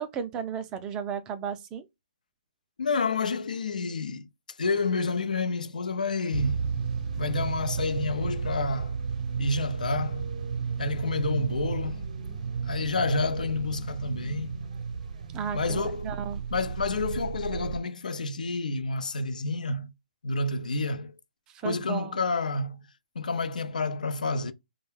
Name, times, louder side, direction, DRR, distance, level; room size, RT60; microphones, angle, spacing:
voice 1, 0.0-1.9 15.3-16.4 21.6-22.2, right 7 dB, 20° right, 0.4 m, -34 dB
voice 2, 2.8-4.3 4.6-6.7 7.2-9.0 9.4-10.3 10.8-12.1 12.6-14.7 15.5-16.1 16.5-19.9 20.2-21.1 21.6-22.8 23.2-24.5, left 3 dB, 75° left, 0.5 m, -29 dB
sound 1, 6.3-17.8, right 6 dB, 60° right, 0.6 m, -33 dB
2.3 x 2.1 x 3.2 m
hypercardioid pair, 145°, 4 cm